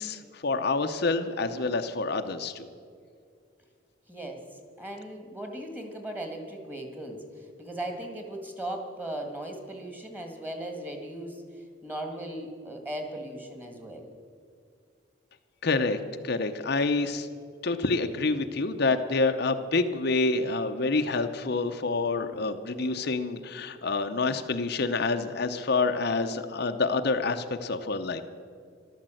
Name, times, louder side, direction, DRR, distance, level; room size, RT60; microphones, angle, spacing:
voice 1, 0.0-2.7 15.6-16.0 16.2-17.3 17.6-28.2, left 3 dB, 55° left, 6 dB, 0.7 m, -27 dB
voice 2, 4.1-14.1 22.3-22.4, right 1 dB, 10° right, 4 dB, 1.8 m, -38 dB
13.0 x 12.5 x 7.7 m, 2.2 s
head